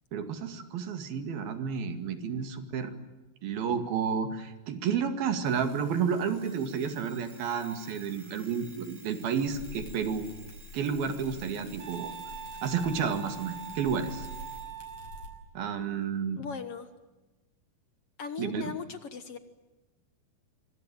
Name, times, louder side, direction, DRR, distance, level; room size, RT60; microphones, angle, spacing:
voice 1, 0.1-2.9 3.4-10.3 10.7-12.1 12.6-14.3 15.6-16.4 18.4-18.7, right 6 dB, 80° right, 8 dB, 4.1 m, -31 dB
Alarm, 5.4-14.7, right 2 dB, 25° right, 4.4 m, -54 dB
sound 1, 9.5-15.3, equal, 40° left, 6.9 m, -47 dB
Wind instrument woodwind instrument, 11.8-15.4, right 6 dB, 45° right, 2.2 m, -43 dB
voice 2, 16.4-16.9 18.2-19.4, left 6 dB, 60° left, 10 dB, 1.6 m, -38 dB
26.0 x 25.0 x 9.0 m, 1.1 s
omnidirectional pair, 4.2 m